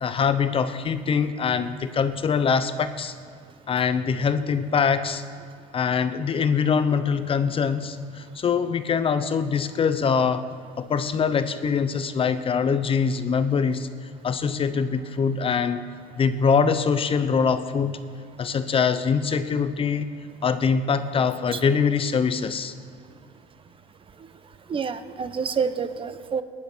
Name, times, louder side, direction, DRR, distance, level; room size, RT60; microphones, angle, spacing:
voice 1, 0.0-3.1 3.7-5.2 5.7-10.4 10.8-13.9 14.2-15.8 16.2-18.0 18.4-20.1 20.4-22.7, left 6 dB, 30° left, 11 dB, 0.8 m, -23 dB
voice 2, 24.7-26.4, right 6 dB, 30° right, 12 dB, 0.9 m, -28 dB
18.0 x 11.0 x 6.3 m, 2.3 s
supercardioid pair, 110°, 18 cm